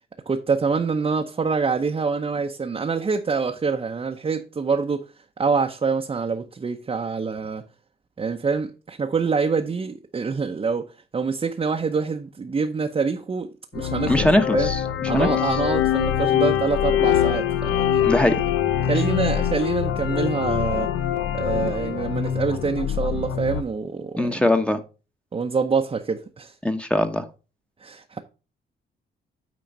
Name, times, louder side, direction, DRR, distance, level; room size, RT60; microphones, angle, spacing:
voice 1, 0.3-5.0 5.4-7.6 8.2-10.8 11.1-14.3 14.5-14.7 15.1-18.0 18.9-20.9 21.3-24.4 25.3-26.5 27.8-28.2, right 5 dB, 30° right, 0.8 m, -25 dB
sound 1, 13.7-23.6, left 10 dB, 90° left, 0.7 m, -24 dB
voice 2, 14.1-15.3 18.0-18.4 24.2-24.8 26.6-27.2, left 1 dB, 5° left, 1.0 m, -21 dB
9.3 x 3.8 x 5.2 m
cardioid pair, 90°, 20 cm